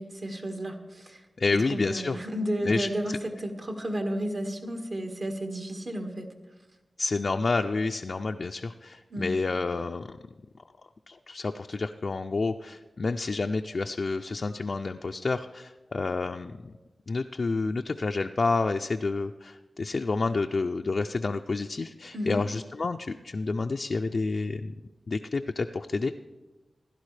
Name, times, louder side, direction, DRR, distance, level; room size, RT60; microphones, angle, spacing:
voice 1, 0.0-1.2 1.5-6.3 9.1-9.3 22.1-22.4, equal, 55° right, 4 dB, 1.5 m, -32 dB
voice 2, 1.4-2.2 2.6-2.9 7.0-10.2 11.1-16.8 17.1-24.7 25.1-26.1, left 3 dB, 60° left, 5 dB, 0.4 m, -29 dB
16.0 x 11.5 x 3.3 m, 1.2 s
cardioid pair, 55°, 0 cm